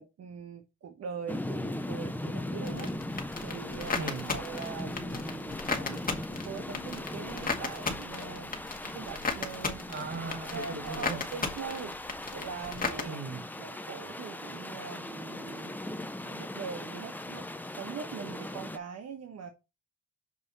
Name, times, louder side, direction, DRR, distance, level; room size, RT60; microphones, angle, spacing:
voice 1, 0.0-8.5 8.8-9.9 10.5-13.2 13.5-15.9 16.2-19.5, right 6 dB, 55° right, 1.3 m, -42 dB
sound 1, 1.3-18.8, left 1 dB, 5° left, 0.8 m, -39 dB
sound 2, 2.6-13.0, left 4 dB, 30° left, 2.0 m, -36 dB
voice 2, 3.9-4.4 9.9-11.4 13.1-13.5, right 4 dB, 40° right, 1.7 m, -38 dB
6.9 x 5.1 x 4.1 m
cardioid pair, 90°, 30 cm